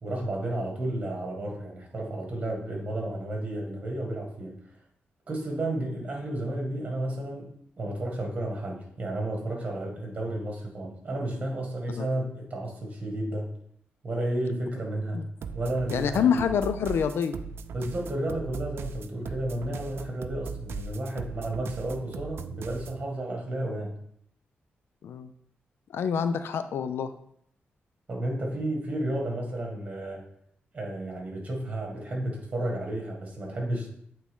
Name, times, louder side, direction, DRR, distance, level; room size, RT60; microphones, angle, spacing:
voice 1, 0.0-4.6 5.3-13.5 14.0-15.2 15.5-16.5 17.7-23.9 28.1-30.2 30.7-33.9, right 1 dB, 35° right, 0 dB, 1.8 m, -32 dB
sound 1, 15.4-23.0, right 5 dB, 80° right, 0.4 m, -39 dB
voice 2, 15.9-17.3 25.0-25.3 25.9-27.1, left 7 dB, 80° left, 10 dB, 0.4 m, -26 dB
8.3 x 3.6 x 3.7 m, 0.67 s
wide cardioid pair, 120°, 4 cm